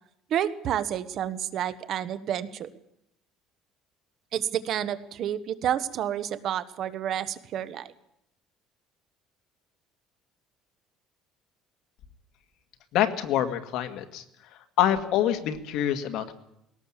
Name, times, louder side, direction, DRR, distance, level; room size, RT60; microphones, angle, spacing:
voice 1, 0.3-2.7 4.3-7.9, right 10 dB, 50° right, 13 dB, 1.2 m, -30 dB
voice 2, 12.9-14.2 14.8-16.3, left 11 dB, 65° left, 7 dB, 1.9 m, -26 dB
21.0 x 17.5 x 7.4 m, 0.81 s
cardioid pair, 140°, 0 cm